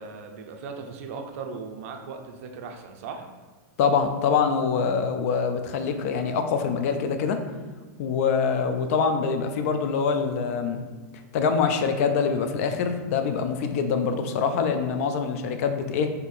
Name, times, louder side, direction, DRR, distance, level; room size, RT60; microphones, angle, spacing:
voice 1, 0.0-3.2, right 5 dB, 55° right, 4 dB, 0.4 m, -38 dB
voice 2, 3.8-7.4 8.0-10.8 11.3-16.1, left 5 dB, 55° left, 7 dB, 0.4 m, -24 dB
2.7 x 2.6 x 4.0 m, 1.4 s
supercardioid pair, 145°, 10 cm